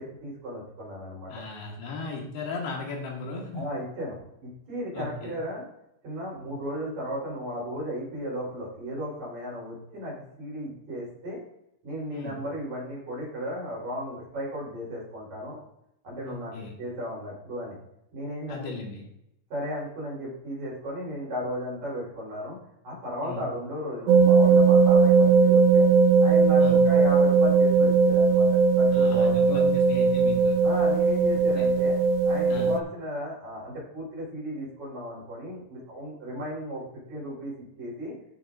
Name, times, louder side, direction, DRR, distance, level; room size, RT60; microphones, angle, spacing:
voice 1, 0.0-1.3 3.5-5.6 6.0-11.4 11.8-15.6 16.0-17.7 18.1-18.6 19.5-22.6 22.8-25.9 26.2-29.6 30.6-32.0 32.2-38.1, equal, 45° right, -5 dB, 5.1 m, -35 dB
voice 2, 1.3-3.7 4.9-5.4 12.1-12.4 16.2-16.8 18.5-19.0 23.2-23.4 26.6-26.8 28.9-30.6 31.3-31.7 32.5-32.8, left 3 dB, 75° left, -1 dB, 3.7 m, -37 dB
sound 1, 24.1-32.8, right 5 dB, 85° right, 2.1 m, -19 dB
14.5 x 6.8 x 2.6 m, 0.81 s
omnidirectional pair, 4.7 m